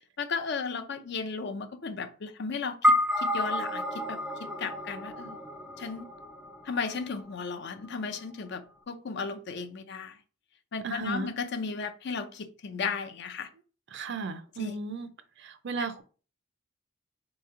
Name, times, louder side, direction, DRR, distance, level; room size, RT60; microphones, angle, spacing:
voice 1, 0.2-5.4 5.8-6.1 6.6-10.1 10.7-13.5 14.6-14.7, left 5 dB, 55° left, 0.5 m, -35 dB
sound 1, 2.8-7.4, left 1 dB, 5° right, 0.4 m, -29 dB
voice 2, 10.8-11.3 13.9-15.1 15.4-16.0, right 3 dB, 60° right, 0.5 m, -34 dB
4.3 x 3.0 x 3.7 m
head